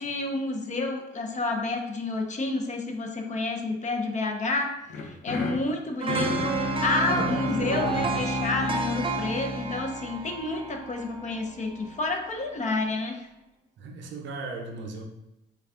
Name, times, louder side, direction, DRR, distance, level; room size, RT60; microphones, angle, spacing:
voice 1, 0.0-13.3, left 3 dB, 40° left, 3 dB, 0.5 m, -30 dB
sound 1, 4.9-11.0, left 2 dB, 75° left, 0.6 m, -33 dB
sound 2, 6.0-12.0 12.4-12.5, right 4 dB, 25° right, 0.4 m, -32 dB
voice 2, 7.0-8.1 13.8-15.0, right 3 dB, 70° right, 2 dB, 0.6 m, -35 dB
3.4 x 2.3 x 3.6 m, 0.92 s
cardioid pair, 90°, 20 cm